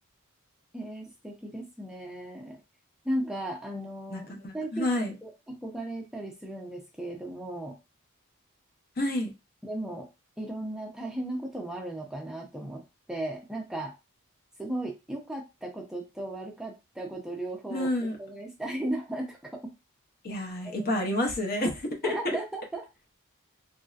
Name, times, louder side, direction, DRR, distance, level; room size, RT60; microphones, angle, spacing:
voice 1, 0.7-2.6 3.0-7.7 9.6-10.1 10.4-13.9 14.6-19.6 20.8-20.9 22.0-22.9, right 1 dB, 5° right, 1 dB, 0.5 m, -36 dB
voice 2, 4.1-5.1 9.0-9.3 17.7-18.2 20.2-22.2, left 1 dB, 45° left, 3 dB, 0.8 m, -29 dB
3.1 x 2.7 x 2.3 m, 0.26 s
head